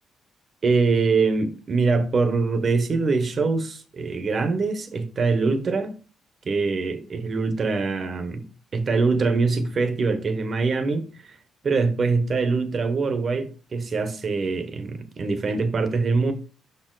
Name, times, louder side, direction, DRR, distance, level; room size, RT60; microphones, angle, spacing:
voice 1, 0.6-5.9 6.4-8.4 8.7-11.0 11.6-16.3, right 4 dB, 45° right, 0.9 m, -23 dB
5.5 x 4.4 x 3.9 m
cardioid pair, 90°, 0 cm